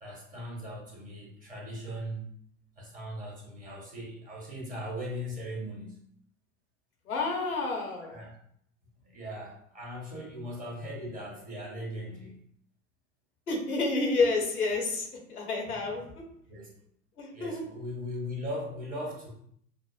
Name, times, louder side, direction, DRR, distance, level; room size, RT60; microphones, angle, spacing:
voice 1, 0.0-2.2 2.8-6.0 8.0-8.4 9.0-12.4 16.5-16.7 17.3-19.4, equal, 20° right, -3 dB, 1.2 m, -39 dB
voice 2, 7.1-8.2 13.5-16.2 17.2-17.6, left 3 dB, 85° left, 1 dB, 1.0 m, -29 dB
6.0 x 2.0 x 2.4 m, 0.68 s
figure-of-eight pair, 85°, 43 cm